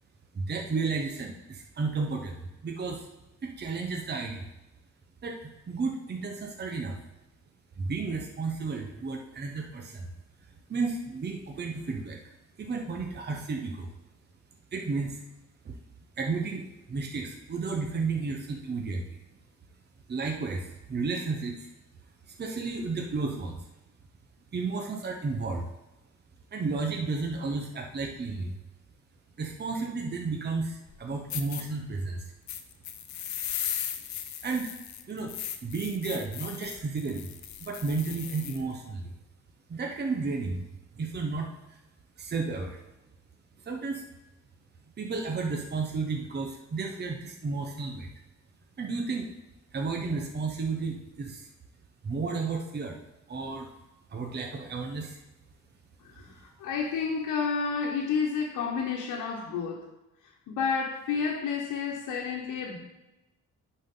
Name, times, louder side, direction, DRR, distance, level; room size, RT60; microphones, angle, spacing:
voice 1, 0.3-3.1 3.4-4.4 5.2-7.0 7.8-10.1 10.7-12.2 12.6-13.9 14.7-15.2 16.2-19.2 20.1-21.7 22.3-23.6 24.5-25.7 26.5-28.6 29.4-32.2 34.4-34.7 35.1-35.4 35.6-37.3 37.6-39.1 39.7-40.6 40.9-41.8 42.2-42.8 43.7-44.0 45.0-48.1 48.8-49.3 49.7-51.5 52.0-53.0 53.3-53.7 54.1-55.2, right 4 dB, 35° right, 2 dB, 1.0 m, -32 dB
sound 1, 30.9-31.0 31.3-31.6 32.5-38.6, left 9 dB, 65° left, 0.8 m, -37 dB
voice 2, 56.0-59.9 60.5-62.8, left 5 dB, 85° left, -2 dB, 1.1 m, -30 dB
10.5 x 4.3 x 3.9 m, 0.99 s
cardioid pair, 90°, 30 cm